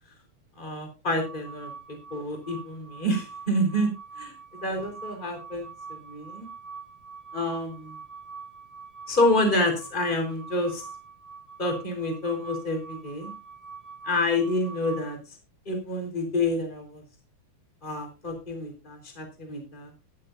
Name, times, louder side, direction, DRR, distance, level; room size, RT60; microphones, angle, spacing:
voice 1, 0.6-1.7 2.1-3.9 4.2-4.3 4.6-6.5 7.3-7.9 9.1-10.8 11.6-13.3 14.1-15.2 15.7-17.0 17.8-19.9, left 1 dB, 15° left, 4 dB, 4.2 m, -28 dB
sound 1, 1.2-15.2, right 5 dB, 35° left, 4.6 m, -44 dB
15.5 x 13.5 x 2.7 m, 0.29 s
omnidirectional pair, 4.2 m